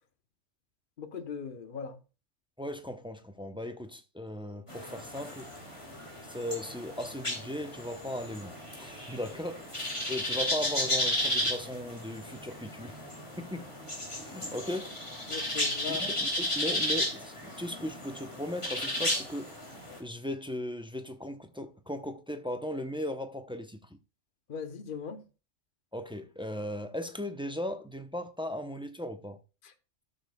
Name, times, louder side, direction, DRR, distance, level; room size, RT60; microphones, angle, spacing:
voice 1, 1.0-2.0 15.3-16.1 24.5-25.2, left 6 dB, 45° left, 1.1 m, -39 dB
voice 2, 2.6-5.5 6.3-9.6 10.0-13.0 13.4-13.7 14.2-14.9 15.9-19.5 20.0-24.0 25.9-29.4, left 1 dB, 5° right, 0.6 m, -37 dB
sound 1, 4.7-20.0, left 1 dB, 25° left, 2.9 m, -34 dB
13.0 x 7.0 x 2.3 m
omnidirectional pair, 1.3 m